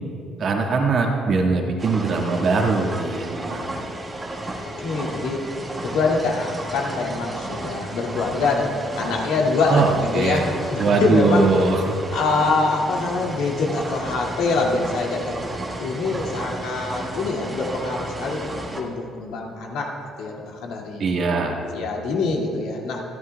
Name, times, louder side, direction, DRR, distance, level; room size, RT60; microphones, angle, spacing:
voice 1, 0.4-3.7 9.7-10.5 10.8-12.0 21.0-21.6, right 3 dB, 50° right, 0 dB, 1.7 m, -21 dB
sound 1, 1.8-18.8, right 2 dB, 20° right, 1.5 m, -33 dB
voice 2, 4.8-5.4 5.7-11.8 12.1-21.0 21.7-23.0, left 3 dB, 85° left, -1 dB, 2.3 m, -25 dB
26.5 x 11.0 x 2.3 m, 2.6 s
cardioid pair, 145°, 0 cm